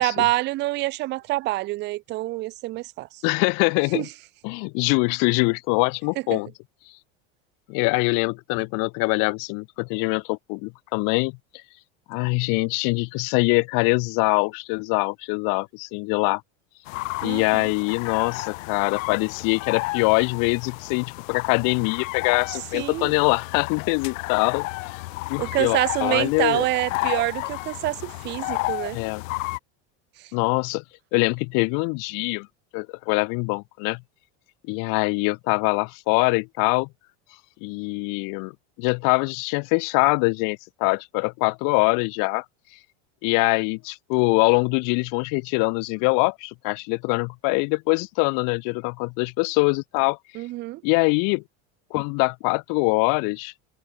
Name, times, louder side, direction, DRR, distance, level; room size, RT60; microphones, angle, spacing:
voice 1, 0.0-3.2 3.9-4.1 6.3-6.4 17.2-17.7 22.7-23.1 25.4-29.0 50.4-50.8, right 18 dB, 30° right, 0.4 m, -26 dB
voice 2, 3.2-4.1 4.4-6.5 7.7-11.3 12.1-16.4 17.2-26.7 28.9-29.2 30.3-30.8 31.1-32.5 32.7-34.0 34.7-36.9 37.6-38.5 38.8-42.4 43.2-50.2 50.8-51.4 51.9-53.5, left 32 dB, 55° left, 1.1 m, -23 dB
sound 1, 16.9-29.6, left 22 dB, 80° left, 1.1 m, -32 dB
supercardioid pair, 140°, 38 cm